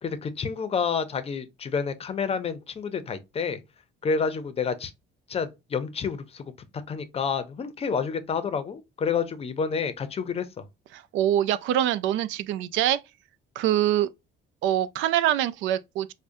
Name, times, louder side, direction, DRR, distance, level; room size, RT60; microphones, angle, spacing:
voice 1, 0.0-3.6 4.0-4.9 5.3-6.5 6.9-10.6, left 6 dB, 30° left, 0.6 m, -29 dB
voice 2, 10.9-13.0 13.6-14.1 14.6-16.1, right 12 dB, 90° right, 0.4 m, -24 dB
4.9 x 2.1 x 2.6 m
cardioid pair, 135°, 19 cm